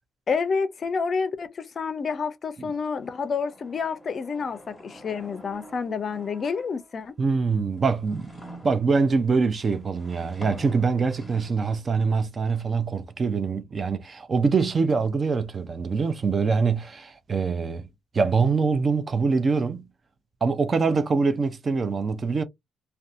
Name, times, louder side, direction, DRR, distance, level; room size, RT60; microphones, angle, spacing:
voice 1, 0.3-7.2, left 5 dB, 45° left, 0.4 m, -29 dB
sound 1, 2.7-7.1 7.6-11.5, right 1 dB, ahead, 1.4 m, -47 dB
voice 2, 7.2-8.3 8.6-17.9 18.1-19.9 20.4-22.4, right 4 dB, 40° right, 0.4 m, -24 dB
2.6 x 2.2 x 2.5 m
cardioid pair, 90°, 0 cm